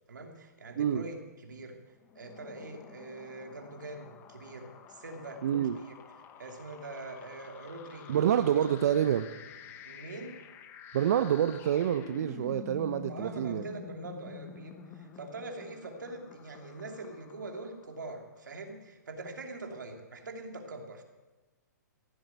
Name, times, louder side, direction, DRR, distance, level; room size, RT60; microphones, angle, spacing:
voice 1, 0.1-1.8 2.1-5.4 5.7-5.9 6.4-8.6 9.8-10.4 13.1-21.0, right 2 dB, 90° right, 3 dB, 2.7 m, -43 dB
sound 1, 2.0-18.4, left 7 dB, 20° left, 1.0 m, -49 dB
voice 2, 5.4-5.8 8.1-9.3 10.9-13.7, right 9 dB, 55° right, 10 dB, 0.6 m, -27 dB
16.0 x 7.6 x 9.2 m, 1.2 s
hypercardioid pair, 145°, 10 cm